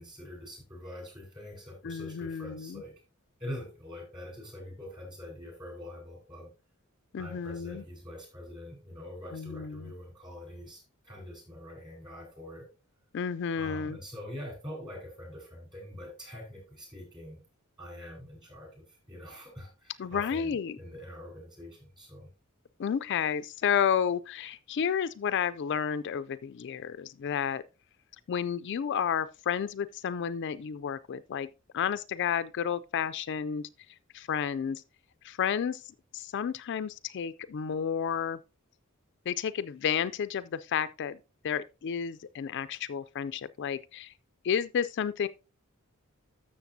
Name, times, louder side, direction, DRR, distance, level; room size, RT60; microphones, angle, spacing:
voice 1, 0.0-2.9 3.4-6.5 7.2-12.7 13.6-17.4 17.8-22.3, left 1 dB, 20° right, 4.7 m, -44 dB
voice 2, 1.8-2.8 7.1-7.8 9.3-9.9 13.1-14.0 20.0-20.8 22.8-27.6 28.3-31.5 31.7-33.7 34.1-34.8 35.2-35.8 36.1-38.4 39.3-41.2 41.4-44.1 44.4-45.3, left 7 dB, 55° left, 0.4 m, -31 dB
13.0 x 6.6 x 2.7 m
head